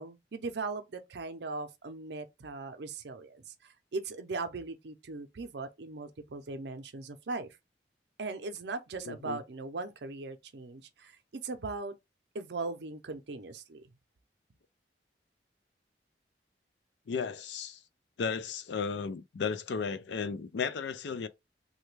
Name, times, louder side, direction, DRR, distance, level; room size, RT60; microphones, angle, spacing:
voice 1, 0.0-7.5 8.2-11.9 12.3-13.8, right 3 dB, 75° right, 0.6 m, -39 dB
voice 2, 9.0-9.4 17.1-17.8 18.2-21.3, left 5 dB, 80° left, 0.4 m, -34 dB
3.2 x 2.2 x 3.1 m
head